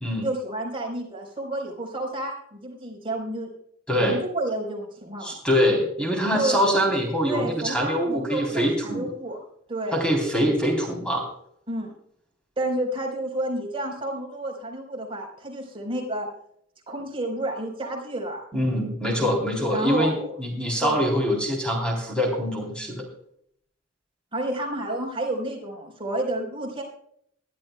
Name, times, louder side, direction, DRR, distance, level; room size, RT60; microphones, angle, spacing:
voice 1, 0.2-3.5 3.9-5.3 6.3-6.6 7.3-9.4 9.7-10.1 11.7-11.9 12.6-16.3 16.9-18.4 19.1-19.3 19.7-20.3 20.8-21.2 24.3-26.8, right 1 dB, 25° right, 0 dB, 4.3 m, -30 dB
voice 2, 3.9-4.2 5.2-9.1 9.9-11.3 18.5-23.0, equal, 5° left, 0 dB, 3.5 m, -24 dB
21.5 x 12.0 x 2.3 m, 0.67 s
head